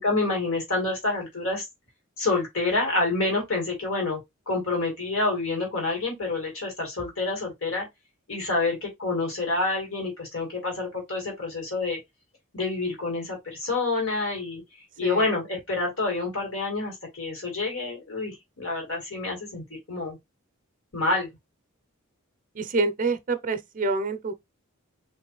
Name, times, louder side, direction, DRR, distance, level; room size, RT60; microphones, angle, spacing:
voice 1, 0.0-1.6 2.2-4.2 4.5-7.9 8.3-12.0 12.5-14.6 15.0-20.2 20.9-21.3, left 3 dB, 75° left, 2.0 m, -28 dB
voice 2, 22.6-24.3, right 3 dB, 40° right, 0.5 m, -27 dB
3.7 x 3.1 x 3.0 m
head